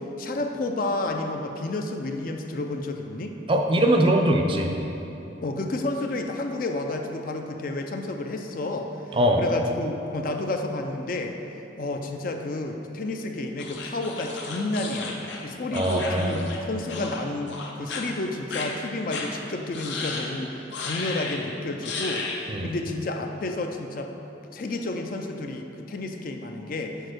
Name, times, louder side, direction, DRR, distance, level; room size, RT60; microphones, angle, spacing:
voice 1, 0.0-3.3 5.4-11.3 11.8-22.3 22.6-24.1 24.5-26.9, left 2 dB, 45° left, 4 dB, 0.4 m, -31 dB
voice 2, 3.5-4.7 9.1-9.4 15.7-16.5 22.5-22.7, right 1 dB, 30° right, 2 dB, 0.5 m, -21 dB
sound 1, 13.6-16.6 16.9-17.2 17.5-18.0 18.5-18.7 19.1-19.3 19.7-20.3 20.7-21.4 21.8-22.4, left 4 dB, 75° left, 0.9 m, -34 dB
6.4 x 4.3 x 6.4 m, 3.0 s
head